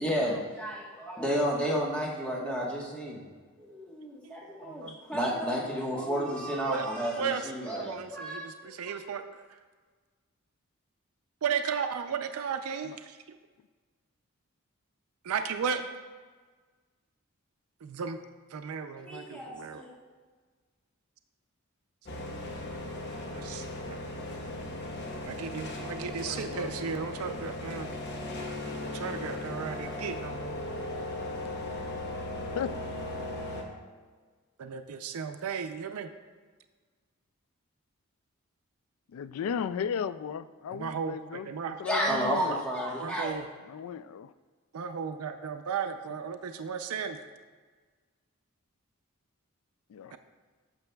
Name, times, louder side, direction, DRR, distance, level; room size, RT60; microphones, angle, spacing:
voice 1, 0.0-3.2 3.6-9.0 19.0-19.9 41.8-43.3, equal, 5° left, -4 dB, 1.2 m, -32 dB
voice 2, 7.2-9.2 11.4-13.2 15.2-15.9 17.8-18.2 18.5-19.8 23.3-24.3 25.2-27.9 28.8-30.5 34.6-36.1 40.7-41.8 42.5-42.6 43.0-43.5 44.7-47.2 50.1-50.2, right 6 dB, 90° right, 7 dB, 0.5 m, -35 dB
sound 1, 22.1-33.6, left 2 dB, 50° left, 1.0 m, -37 dB
voice 3, 26.2-26.8 32.6-32.7 39.1-42.6 43.6-44.3 49.9-50.2, left 7 dB, 80° left, 16 dB, 0.3 m, -36 dB
12.0 x 6.8 x 2.3 m, 1.4 s
head